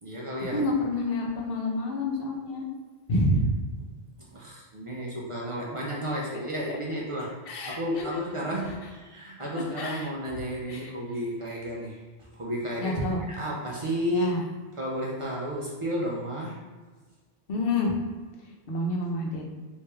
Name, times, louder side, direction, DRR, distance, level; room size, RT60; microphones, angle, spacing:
voice 1, 0.0-0.7 4.3-13.0 13.3-14.3 14.7-16.7, equal, 40° right, -4 dB, 0.5 m, -32 dB
voice 2, 0.5-2.7 3.1-3.5 7.5-8.2 9.5-10.1 10.7-10.9 12.8-13.2 14.1-14.4 17.5-17.9 18.7-19.5, left 1 dB, 65° left, 0 dB, 0.9 m, -28 dB
3.2 x 2.6 x 3.3 m, 1.4 s
omnidirectional pair, 1.1 m